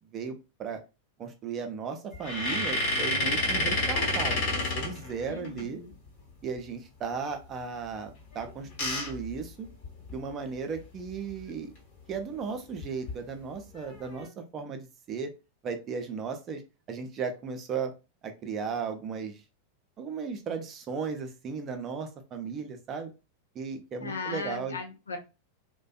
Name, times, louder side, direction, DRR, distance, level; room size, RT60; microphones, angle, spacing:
voice 1, 0.1-0.8 1.2-5.8 6.4-8.1 8.3-9.7 10.1-11.7 12.1-15.3 15.6-16.6 16.9-17.9 18.2-19.4 20.0-23.1 23.5-24.8, right 5 dB, 30° right, 5 dB, 0.5 m, -35 dB
sound 1, 2.1-5.6 8.3-10.2 10.8-10.9 11.1-11.3 12.8-13.1 13.7-14.3, left 2 dB, 50° left, 1.2 m, -30 dB
voice 2, 5.3-5.9 24.0-25.2, left 4 dB, 75° left, 3 dB, 0.5 m, -37 dB
2.5 x 2.2 x 2.3 m, 0.28 s
figure-of-eight pair, 90°, 0 cm